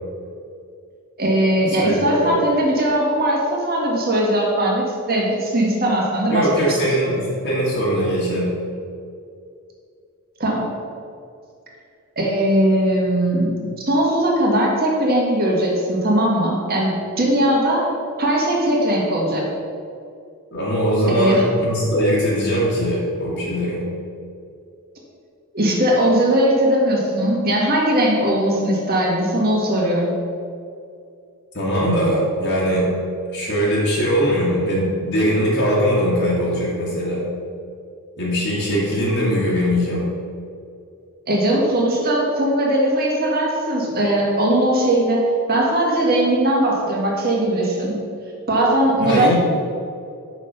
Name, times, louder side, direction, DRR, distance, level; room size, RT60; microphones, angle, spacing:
voice 1, 1.2-7.1 10.4-10.7 12.2-13.5 13.9-17.9 18.2-19.5 21.1-21.5 25.5-30.1 41.3-48.0 48.5-49.3, right 1 dB, 45° right, -2 dB, 1.7 m, -19 dB
voice 2, 1.8-2.4 6.3-8.6 20.5-23.9 31.5-33.0 33.3-37.3 38.2-40.1 49.0-49.4, equal, 55° left, -7 dB, 1.8 m, -21 dB
6.3 x 5.9 x 5.5 m, 2.4 s
head